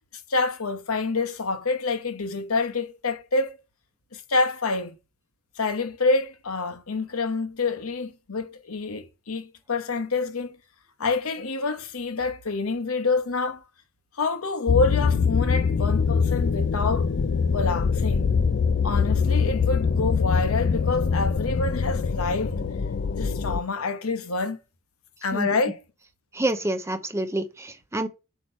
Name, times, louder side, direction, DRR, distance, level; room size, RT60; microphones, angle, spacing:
voice 1, 0.3-3.5 4.1-5.0 5.6-10.6 11.0-13.6 14.2-17.1 17.5-18.3 18.8-22.6 23.1-24.6 25.2-25.8, left 3 dB, 80° left, 1.0 m, -27 dB
sound 1, 14.7-23.6, left 5 dB, 50° left, 0.3 m, -23 dB
voice 2, 26.3-28.1, right 1 dB, 15° right, 0.5 m, -28 dB
8.3 x 3.0 x 5.5 m
head